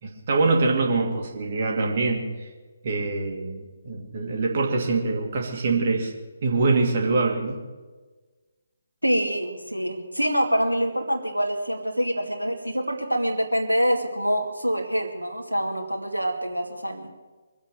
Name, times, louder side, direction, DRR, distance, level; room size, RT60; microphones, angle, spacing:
voice 1, 0.0-2.3 2.8-6.1 6.4-7.6, right 3 dB, 40° right, 0 dB, 2.6 m, -24 dB
voice 2, 9.0-17.1, equal, 90° right, 1 dB, 2.3 m, -25 dB
24.5 x 8.2 x 6.5 m, 1.3 s
figure-of-eight pair, 140°, 0 cm